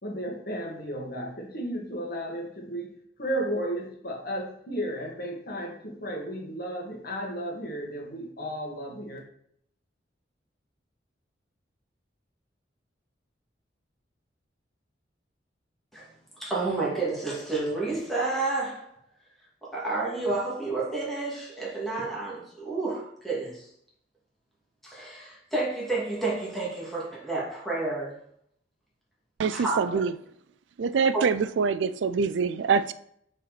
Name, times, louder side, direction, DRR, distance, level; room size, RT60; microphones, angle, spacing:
voice 1, 0.0-2.9 3.2-9.2, right 1 dB, 55° left, -1 dB, 1.8 m, -34 dB
voice 2, 16.4-18.9 19.6-23.7 24.8-28.1 29.5-30.0 31.1-31.2, right 3 dB, ahead, -6 dB, 2.1 m, -30 dB
voice 3, 29.4-30.1 30.8-32.9, right 5 dB, 90° right, 15 dB, 0.4 m, -25 dB
5.9 x 4.3 x 4.1 m, 0.68 s
head